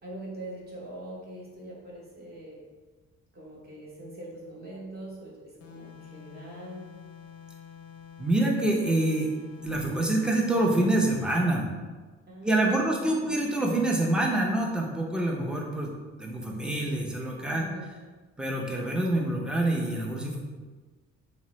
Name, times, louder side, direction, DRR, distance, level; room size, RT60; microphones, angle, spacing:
voice 1, 0.0-2.6 3.3-6.9 12.3-13.3 17.6-17.9, right 1 dB, 30° right, -4 dB, 0.9 m, -43 dB
sound 1, 5.6-11.4, left 8 dB, 55° left, 0.5 m, -48 dB
voice 2, 8.2-9.3 9.6-11.7 12.4-15.9 16.2-17.7 18.4-20.4, right 1 dB, 5° right, -1 dB, 0.4 m, -26 dB
2.8 x 2.0 x 2.9 m, 1.3 s
cardioid pair, 90°, 30 cm